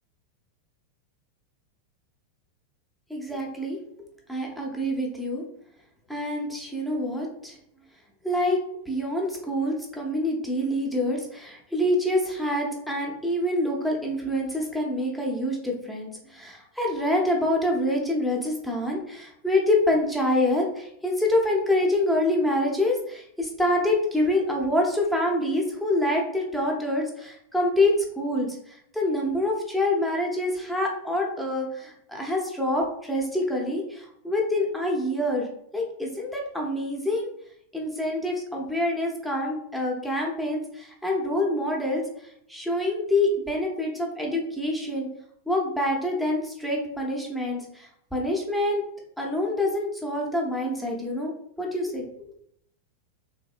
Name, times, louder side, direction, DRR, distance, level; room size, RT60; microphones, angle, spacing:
voice 1, 3.1-3.8 4.3-5.4 6.1-7.6 8.2-8.6 8.9-35.5 35.7-37.3 37.7-42.0 42.5-45.1 45.5-48.8 49.2-51.3 51.6-52.0, left 1 dB, ahead, -2 dB, 0.8 m, -26 dB
3.5 x 2.7 x 2.4 m, 0.71 s
figure-of-eight pair, 90°, 0 cm